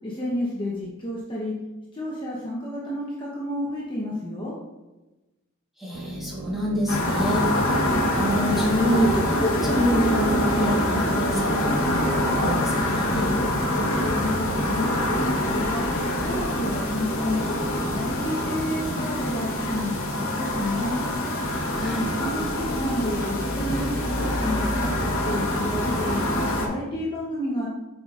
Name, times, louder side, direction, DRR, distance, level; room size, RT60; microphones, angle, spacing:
voice 1, 0.0-1.5 1.9-4.5 13.8-15.9 16.2-17.4 17.8-21.0 22.2-26.2 26.6-27.7, left 1 dB, 25° left, -5 dB, 0.9 m, -30 dB
voice 2, 5.8-13.3 21.7-22.1, equal, ahead, -7 dB, 1.7 m, -27 dB
sound 1, 5.9-19.9, right 1 dB, 50° right, 0.6 m, -38 dB
sound 2, 6.9-26.7, left 1 dB, 85° left, 1.1 m, -25 dB
8.0 x 5.1 x 2.5 m, 1.1 s
head